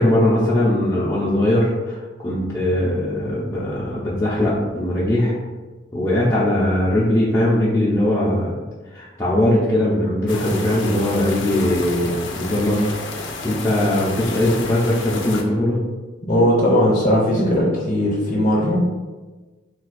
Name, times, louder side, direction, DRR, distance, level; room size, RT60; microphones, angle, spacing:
voice 1, 0.0-5.4 5.9-8.5 8.9-12.8 13.1-15.8, left 1 dB, 15° left, -8 dB, 0.5 m, -20 dB
sound 1, 10.3-15.4, left 3 dB, 85° left, 0.5 m, -31 dB
voice 2, 16.3-18.8, equal, 45° left, -5 dB, 0.7 m, -18 dB
2.5 x 2.2 x 4.0 m, 1.3 s
head